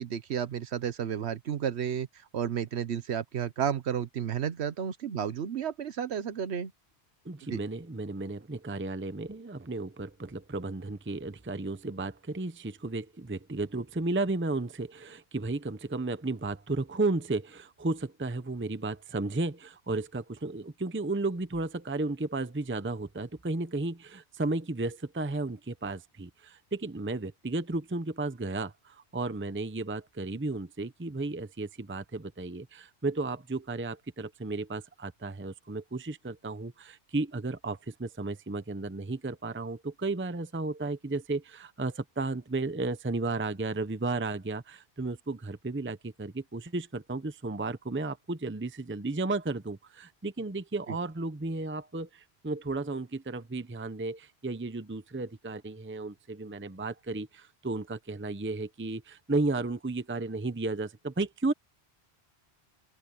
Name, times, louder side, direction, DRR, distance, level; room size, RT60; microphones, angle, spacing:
voice 1, 0.0-2.1 2.3-6.7 7.5-7.6, right 8 dB, 80° right, 1.1 m, -32 dB
voice 2, 7.2-61.5, right 2 dB, 15° right, 0.7 m, -33 dB
open air
omnidirectional pair, 1.1 m